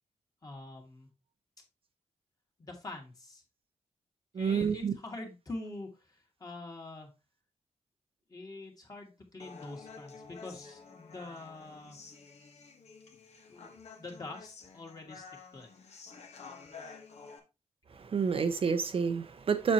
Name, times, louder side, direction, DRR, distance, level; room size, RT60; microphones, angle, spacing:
voice 1, 0.4-1.1 2.6-3.4 4.4-7.1 8.3-12.0 13.4-15.2 15.5-15.7, left 2 dB, 30° left, 2.2 m, -45 dB
voice 2, 4.3-4.9 18.0-19.7, right 6 dB, 50° right, 0.8 m, -29 dB
Human voice, 9.4-17.4, left 4 dB, 60° left, 1.4 m, -50 dB
7.3 x 6.5 x 2.9 m
wide cardioid pair, 130°, 13 cm